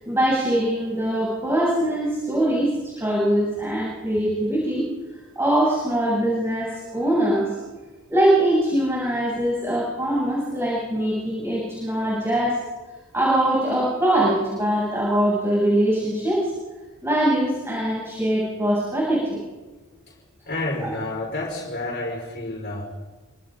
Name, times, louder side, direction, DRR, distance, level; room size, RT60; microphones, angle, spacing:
voice 1, 0.0-4.9 5.4-7.6 8.1-12.6 13.1-16.5 17.0-19.4 20.8-20.9, right 1 dB, 10° right, -6 dB, 7.8 m, -22 dB
voice 2, 20.5-22.8, left 2 dB, 45° left, -2 dB, 5.5 m, -29 dB
30.0 x 27.0 x 4.0 m, 1.2 s
head